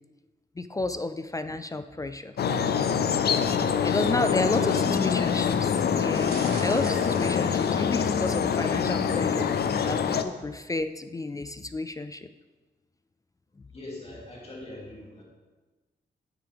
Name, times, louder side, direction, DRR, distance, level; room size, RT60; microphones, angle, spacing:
voice 1, 0.6-2.3 3.8-9.5 9.8-12.3, left 2 dB, 20° left, 11 dB, 0.3 m, -31 dB
sound 1, 2.4-10.2, left 7 dB, 65° left, 0.6 m, -25 dB
voice 2, 4.3-4.8 13.7-15.2, left 1 dB, 35° left, -4 dB, 2.8 m, -39 dB
sound 2, 6.1-8.4 8.9-9.2 9.4-9.5, right 1 dB, 65° right, 2.9 m, -43 dB
9.2 x 8.6 x 3.5 m, 1.2 s
wide cardioid pair, 120°, 18 cm